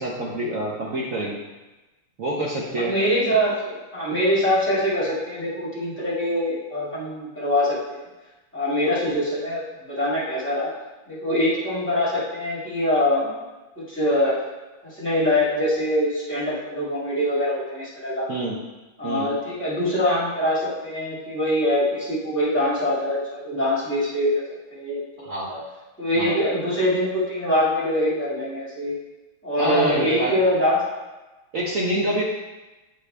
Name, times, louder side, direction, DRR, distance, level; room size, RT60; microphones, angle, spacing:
voice 1, 0.0-1.4 2.2-2.9 18.3-18.6 19.0-19.3 25.2-25.5 26.2-26.4 29.6-30.3 31.5-32.2, right 1 dB, 65° right, -4 dB, 0.8 m, -26 dB
voice 2, 2.8-8.0 8.5-10.7 11.1-13.4 13.8-14.4 14.8-18.3 19.0-24.4 24.7-25.6 26.0-28.9 29.4-30.8, left 1 dB, 5° left, -9 dB, 1.7 m, -24 dB
8.3 x 3.7 x 3.3 m, 1.1 s
omnidirectional pair, 2.4 m